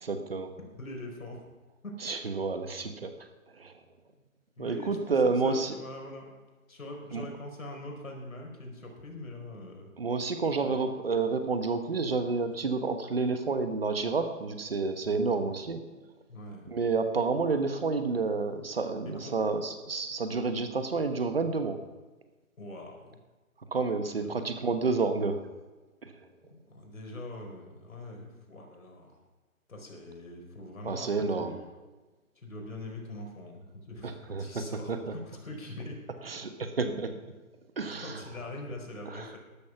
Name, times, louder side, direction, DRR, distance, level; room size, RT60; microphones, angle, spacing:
voice 1, 0.0-0.5 2.0-3.3 3.5-3.7 4.6-5.7 7.1-7.3 10.0-15.8 16.7-21.8 23.7-25.4 26.0-26.3 30.8-31.5 34.0-34.6 34.9-35.0 36.2-37.1 37.8-38.3 39.0-39.3, right 4 dB, 45° right, 8 dB, 1.2 m, -30 dB
voice 2, 0.6-1.4 1.8-1.9 4.2-4.3 4.6-5.1 5.4-6.2 6.7-9.9 10.6-10.8 16.3-16.7 17.1-17.3 19.2-19.3 22.6-23.2 24.2-24.3 26.5-29.2 29.7-31.1 31.4-31.7 32.4-36.0 37.9-39.4, left 1 dB, 70° left, 2 dB, 4.5 m, -43 dB
12.5 x 11.5 x 6.0 m, 1.2 s
hypercardioid pair, 175°, 42 cm